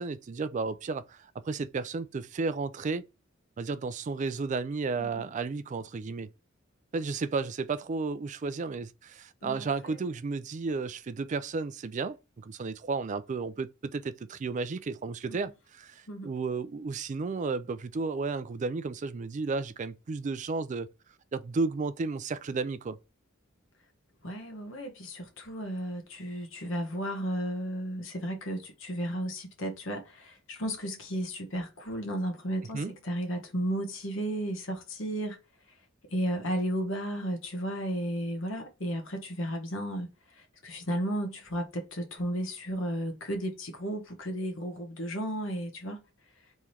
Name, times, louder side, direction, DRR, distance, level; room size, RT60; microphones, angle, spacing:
voice 1, 0.0-3.1 3.6-6.3 6.9-20.9 21.3-23.0 32.7-32.9, right 4 dB, 40° right, 0.4 m, -33 dB
voice 2, 9.4-10.0 15.3-15.4 16.1-16.3 24.2-35.4 36.1-40.1 40.4-46.0, equal, 65° left, 1.3 m, -34 dB
3.6 x 3.2 x 4.2 m
head